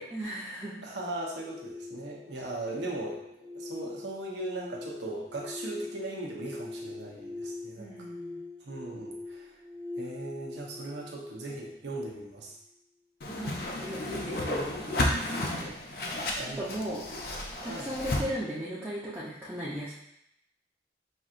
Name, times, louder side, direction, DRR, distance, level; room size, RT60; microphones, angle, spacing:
voice 1, 0.1-0.8 7.8-8.4 13.3-15.8 16.6-17.3 17.6-19.9, equal, 10° right, -9 dB, 0.6 m, -37 dB
voice 2, 0.8-8.1 8.6-9.6 10.0-12.5 15.3-15.9 16.4-16.7 17.6-17.9, right 2 dB, 75° right, -2 dB, 0.8 m, -38 dB
sound 1, 1.2-12.3, left 3 dB, 35° right, 1.1 m, -43 dB
Whoosh swoosh swish, 13.2-18.2, left 1 dB, 55° left, 0.6 m, -32 dB
5.4 x 2.8 x 2.5 m, 0.79 s
head